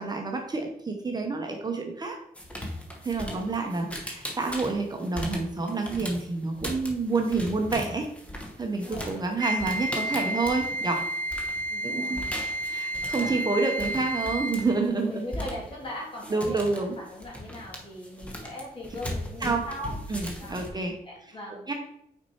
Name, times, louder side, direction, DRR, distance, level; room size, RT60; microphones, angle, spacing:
voice 1, 0.0-2.2 3.0-8.1 8.6-11.1 11.8-12.2 12.6-15.3 16.3-17.0 19.4-19.6 20.1-21.0 21.7-21.8, right 3 dB, 25° right, 2 dB, 0.8 m, -28 dB
sound 1, 2.3-11.7 12.0-20.7, equal, 10° left, 0.9 m, -39 dB
voice 2, 3.2-3.5 8.6-9.2 11.7-12.3 13.1-13.6 14.8-20.0 20.4-20.6 21.0-21.7, left 1 dB, 35° left, -3 dB, 2.2 m, -40 dB
Wind instrument woodwind instrument, 9.4-14.8, right 1 dB, 65° right, 0.5 m, -31 dB
5.9 x 4.4 x 4.3 m, 0.74 s
wide cardioid pair, 135°, 15 cm